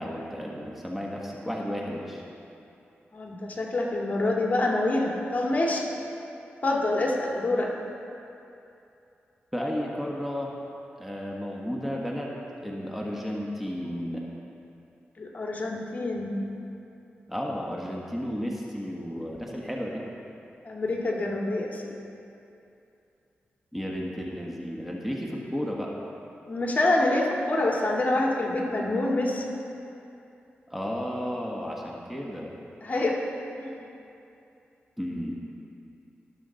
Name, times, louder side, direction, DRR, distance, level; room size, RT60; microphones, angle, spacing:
voice 1, 0.0-2.2 9.5-10.5 11.0-12.3 12.6-14.2 17.3-20.0 23.7-25.9 30.7-32.6 35.0-35.3, equal, 5° right, -2 dB, 1.3 m, -33 dB
voice 2, 3.1-5.9 6.6-7.7 15.2-16.4 20.6-21.9 26.5-29.5 32.8-33.2 33.6-33.8, left 2 dB, 40° left, -2 dB, 1.9 m, -26 dB
18.5 x 6.9 x 4.0 m, 2.7 s
cardioid pair, 65°, 4 cm